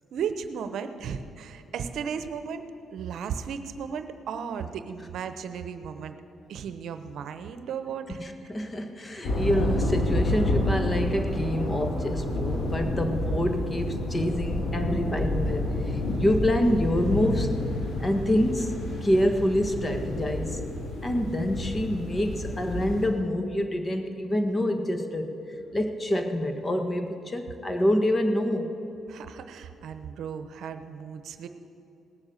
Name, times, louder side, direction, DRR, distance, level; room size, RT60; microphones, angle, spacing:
voice 1, 0.1-2.6 2.9-6.2 6.5-8.5 29.1-31.5, right 7 dB, 70° right, 10 dB, 0.8 m, -35 dB
voice 2, 8.1-17.6 18.0-20.7 21.0-25.3 25.7-28.7, equal, 25° left, 6 dB, 1.5 m, -27 dB
sound 1, 9.2-23.1, left 1 dB, 65° left, 3.0 m, -29 dB
18.0 x 7.3 x 8.0 m, 2.9 s
supercardioid pair, 70°, 0 cm